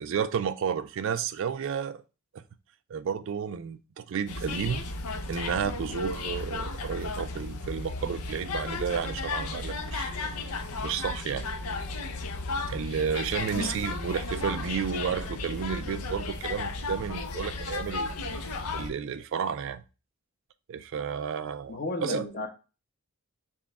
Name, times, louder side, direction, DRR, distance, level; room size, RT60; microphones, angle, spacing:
voice 1, 0.0-2.0 2.3-2.4 2.9-4.8 5.3-10.1 10.8-11.5 12.7-18.1 18.4-19.8 20.7-22.2, right 7 dB, 60° right, 0.3 m, -32 dB
sound 1, 4.3-18.9, left 3 dB, 85° left, 0.6 m, -34 dB
voice 2, 21.7-22.5, left 2 dB, 40° left, 0.9 m, -33 dB
6.0 x 2.2 x 3.4 m
head